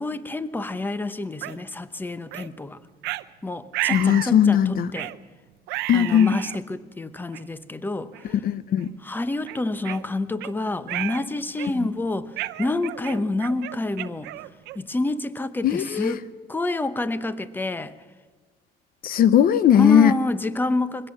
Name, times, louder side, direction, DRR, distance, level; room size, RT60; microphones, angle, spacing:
voice 1, 0.0-2.8 3.4-5.1 5.9-8.2 9.0-12.3 12.6-14.3 14.7-16.2 16.5-17.9 19.7-21.1, left 2 dB, 10° left, 0.9 m, -28 dB
sound 1, 1.4-1.6 2.3-2.5 3.0-3.2 3.7-4.4 5.0-5.2 5.7-6.6 7.3-7.4 8.1-8.4 8.8-8.9 9.5-10.5 10.9-11.3 11.6-11.9 12.4-14.9, right 17 dB, 90° right, 0.7 m, -32 dB
voice 2, 3.9-4.9 5.9-6.4 8.4-8.9 11.7-11.9 15.6-16.2 19.0-20.1, left 9 dB, 60° left, 0.7 m, -18 dB
22.5 x 16.5 x 7.5 m
cardioid pair, 110°, 17 cm